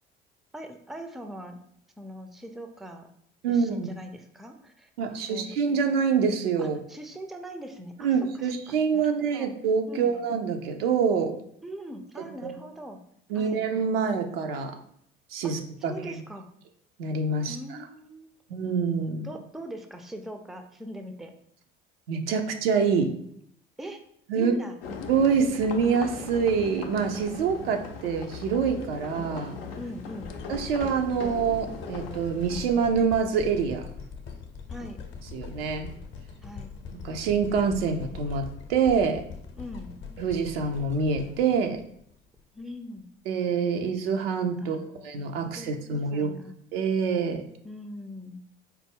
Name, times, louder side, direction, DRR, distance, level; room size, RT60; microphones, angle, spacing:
voice 1, 0.5-1.6 2.0-3.1 3.5-4.9 5.3-5.6 6.6-9.5 9.9-10.2 11.6-13.0 13.3-13.7 15.4-15.5 15.8-16.5 17.5-18.3 19.2-21.3 23.8-24.0 24.3-24.8 29.8-30.3 34.7-35.0 36.4-36.7 39.6-39.9 42.5-43.1 44.6-45.1 45.5-46.6 47.6-48.4, equal, ahead, 6 dB, 0.4 m, -41 dB
voice 2, 3.4-3.9 5.0-6.8 8.0-11.3 12.4-12.5 13.3-14.8 15.3-16.2 17.0-17.6 18.5-19.3 22.1-23.1 24.3-24.5 25.1-29.6 30.5-33.8 35.3-35.9 37.0-39.2 40.2-41.8 43.3-46.3 46.7-47.4, right 6 dB, 80° right, 5 dB, 0.5 m, -26 dB
sound 1, 24.8-32.6, left 5 dB, 80° left, 0.5 m, -39 dB
sound 2, 30.2-42.4 43.0-43.1, left 6 dB, 40° left, 0.6 m, -42 dB
4.2 x 2.1 x 3.5 m, 0.68 s
hypercardioid pair, 60°, 29 cm